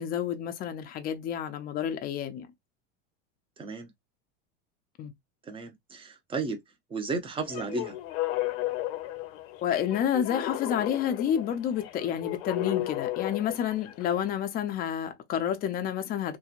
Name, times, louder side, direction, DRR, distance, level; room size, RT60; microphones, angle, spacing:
voice 1, 0.0-2.5 5.0-5.1 9.6-16.4, left 9 dB, 25° left, 0.4 m, -29 dB
voice 2, 3.6-3.9 5.4-6.6 6.9-8.0, right 3 dB, 15° right, 0.6 m, -33 dB
sound 1, 7.5-14.3, left 15 dB, 65° left, 0.7 m, -34 dB
2.9 x 2.1 x 2.4 m
supercardioid pair, 135°, 34 cm